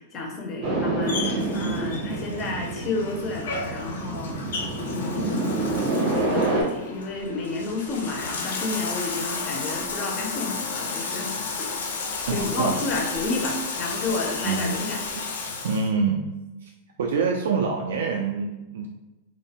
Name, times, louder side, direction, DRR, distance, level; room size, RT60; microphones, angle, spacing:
voice 1, 0.0-11.7 12.3-15.0, left 3 dB, 20° left, 0 dB, 0.4 m, -31 dB
sound 1, 0.6-6.6, right 2 dB, 35° right, 0.6 m, -27 dB
Bathtub (filling or washing), 1.0-15.9, left 4 dB, 90° left, 0.4 m, -33 dB
voice 2, 12.3-12.8 14.4-14.8 15.6-16.2 16.6-16.7 17.0-18.9, right 5 dB, 85° right, 0 dB, 0.3 m, -25 dB
2.5 x 2.0 x 2.7 m, 1.0 s
supercardioid pair, 180°, 0 cm